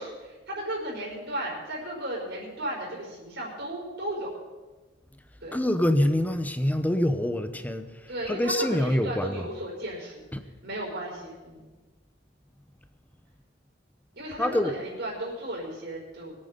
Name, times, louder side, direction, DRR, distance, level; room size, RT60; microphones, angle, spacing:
voice 1, 0.0-4.3 5.4-5.6 8.1-10.2 10.6-11.6 14.1-16.3, right 1 dB, 65° right, -4 dB, 5.2 m, -35 dB
voice 2, 5.5-9.5 10.3-10.4 14.4-14.7, left 1 dB, 10° left, 9 dB, 0.9 m, -26 dB
23.0 x 9.0 x 5.3 m, 1.2 s
head